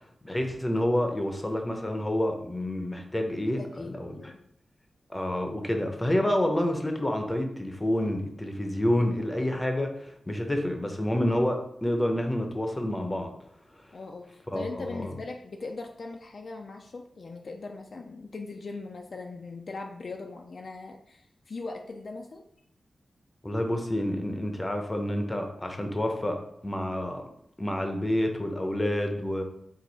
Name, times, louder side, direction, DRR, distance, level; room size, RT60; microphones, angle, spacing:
voice 1, 0.2-4.2 5.1-13.3 14.5-15.1 23.4-26.4 26.6-27.2 27.6-29.4, left 1 dB, 15° left, 4 dB, 0.7 m, -28 dB
voice 2, 3.6-4.4 13.9-22.4, left 3 dB, 60° left, 3 dB, 0.4 m, -40 dB
4.6 x 2.4 x 4.0 m, 0.70 s
wide cardioid pair, 85°, 0 cm